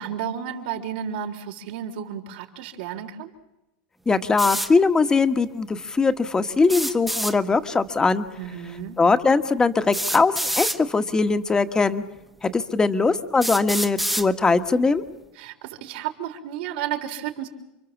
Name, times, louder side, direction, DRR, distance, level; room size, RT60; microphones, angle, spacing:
voice 1, 0.0-3.3 8.4-9.0 15.4-17.5, right 9 dB, 70° right, 3 dB, 3.8 m, -32 dB
voice 2, 4.1-8.2 9.0-12.0 12.4-15.0, left 4 dB, 15° left, 8 dB, 1.4 m, -21 dB
sound 1, 4.4-4.7 6.6-7.3 8.8-8.9 9.9-10.8 11.8-11.9 12.6-12.7 13.4-14.3, right 1 dB, ahead, 1.2 m, -26 dB
29.5 x 24.5 x 7.3 m, 0.96 s
supercardioid pair, 140°, 5 cm